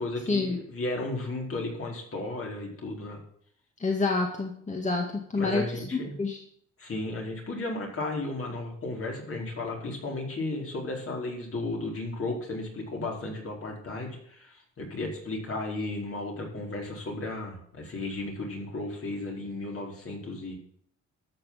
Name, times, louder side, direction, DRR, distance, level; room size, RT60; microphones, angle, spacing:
voice 1, 0.0-3.2 5.3-6.1 6.8-20.6, left 2 dB, 45° left, 0 dB, 4.4 m, -34 dB
voice 2, 3.8-5.6 6.2-6.4, left 3 dB, 25° left, 1 dB, 2.0 m, -27 dB
13.0 x 6.4 x 7.5 m, 0.64 s
cardioid pair, 90°, 30 cm